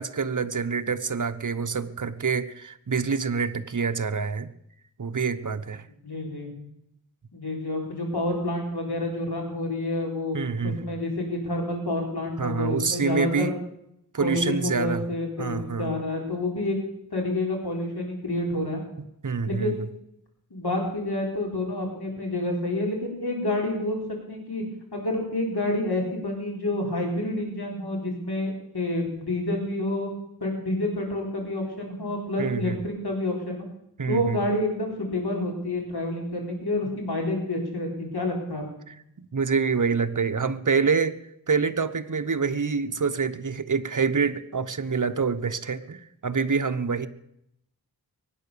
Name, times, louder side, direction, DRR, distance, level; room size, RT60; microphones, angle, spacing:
voice 1, 0.0-4.5 5.0-5.8 10.3-10.9 12.4-13.5 14.1-15.1 15.4-15.9 19.2-19.7 32.4-32.8 34.0-34.4 39.2-41.2 41.5-47.1, right 5 dB, 55° right, 10 dB, 1.0 m, -26 dB
voice 2, 6.0-6.5 7.3-10.4 10.6-13.5 14.2-16.8 17.1-18.8 19.5-19.8 20.5-24.6 24.9-30.1 30.4-33.7 34.1-38.6, left 1 dB, 85° left, 1 dB, 4.1 m, -28 dB
22.5 x 9.3 x 6.8 m, 0.79 s
wide cardioid pair, 55°, 38 cm